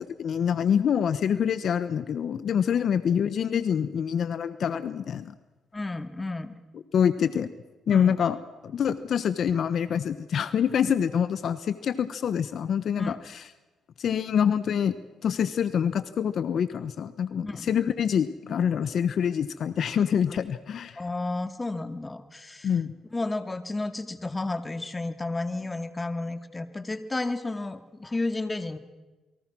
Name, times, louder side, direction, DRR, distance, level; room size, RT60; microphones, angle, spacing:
voice 1, 0.2-5.3 6.9-7.5 7.9-8.4 8.6-13.4 14.0-15.0 15.2-21.0 22.6-22.9, left 8 dB, 60° left, 13 dB, 1.2 m, -26 dB
voice 2, 5.7-6.5 7.9-8.2 13.0-13.3 17.4-17.7 21.0-22.7 23.1-28.8, left 2 dB, 20° left, 9 dB, 2.1 m, -32 dB
29.0 x 23.0 x 6.3 m, 1.2 s
cardioid pair, 90°, 0 cm